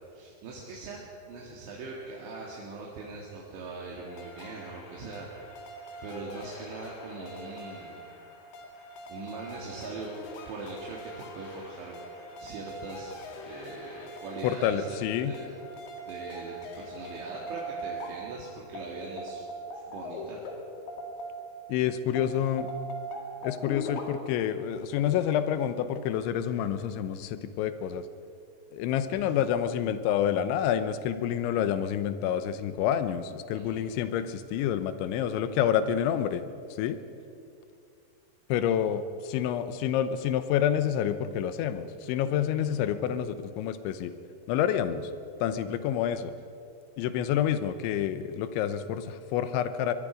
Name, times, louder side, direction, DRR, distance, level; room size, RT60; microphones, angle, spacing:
voice 1, 0.1-1.0 1.3-5.3 6.0-8.0 9.1-10.1 10.5-13.1 13.5-15.0 15.2-15.5 16.1-19.4 19.7-20.4 29.1-29.3 33.6-33.8, right 3 dB, 80° right, -3 dB, 4.3 m, -41 dB
sound 1, 4.1-21.7 22.2-24.0, equal, 65° left, 3.9 m, -42 dB
voice 2, 14.4-15.3 21.7-22.7 23.4-28.1 28.7-36.4 36.7-37.0 38.5-44.1 44.5-45.1 45.4-46.3 47.0-49.9, left 9 dB, 90° left, 11 dB, 3.3 m, -28 dB
23.0 x 22.0 x 5.1 m, 2.5 s
omnidirectional pair, 5.2 m